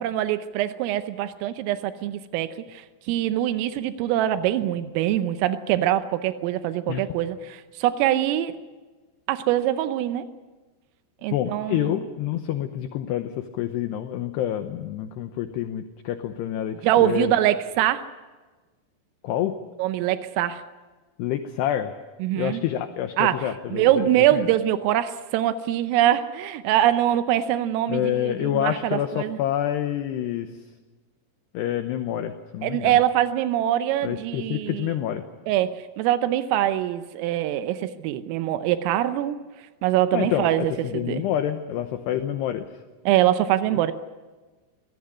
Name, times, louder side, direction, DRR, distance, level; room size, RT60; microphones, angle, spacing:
voice 1, 0.0-8.6 9.3-10.3 11.2-12.0 16.8-18.1 19.8-20.6 22.2-22.6 23.2-29.4 32.6-34.9 35.5-39.4 39.8-41.2 43.1-43.9, right 12 dB, 90° right, 11 dB, 3.5 m, -23 dB
voice 2, 11.3-17.4 19.2-19.6 21.2-21.9 22.4-23.9 27.9-30.5 31.5-33.0 34.0-35.2 40.1-42.7, left 11 dB, 75° left, 8 dB, 2.6 m, -27 dB
23.5 x 17.5 x 9.8 m, 1.3 s
omnidirectional pair, 5.8 m